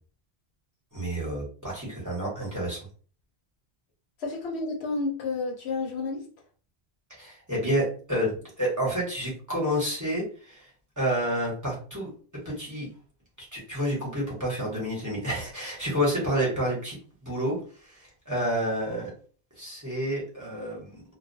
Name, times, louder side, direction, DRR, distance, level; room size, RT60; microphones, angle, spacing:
voice 1, 0.9-2.9 7.1-10.7 11.0-12.1 12.4-12.9 13.4-19.1 19.6-21.0, equal, 20° right, 0.9 m, -29 dB
voice 2, 4.2-6.3, left 3 dB, 75° left, 0.9 m, -30 dB
2.3 x 2.1 x 2.6 m
omnidirectional pair, 1.1 m